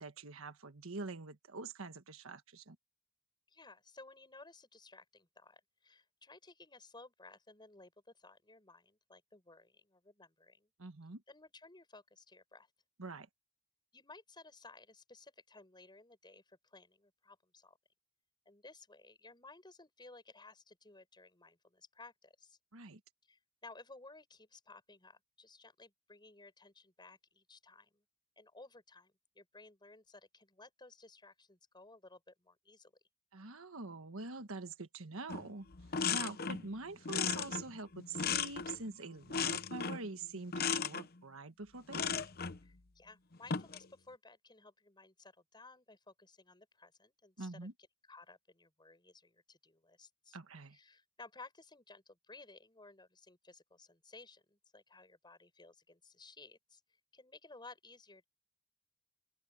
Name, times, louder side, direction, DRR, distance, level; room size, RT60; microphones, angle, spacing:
voice 1, 0.0-2.8 10.8-11.2 13.0-13.3 22.7-23.0 33.3-35.7 36.1-42.2 47.4-47.7 50.3-50.8, right 3 dB, 70° right, 1.5 m, -45 dB
voice 2, 3.5-10.7 11.3-12.7 13.9-17.8 18.4-22.6 23.3-28.0 28.4-32.9 42.6-47.7 48.0-50.4 50.7-56.8 57.1-58.2, left 3 dB, 20° left, 7.8 m, -57 dB
sound 1, 35.3-35.5 35.7-36.7 37.1-38.9 39.3-40.1 40.5-41.1 41.9-42.6 43.3-43.9, left 6 dB, 45° left, 0.8 m, -36 dB
open air
head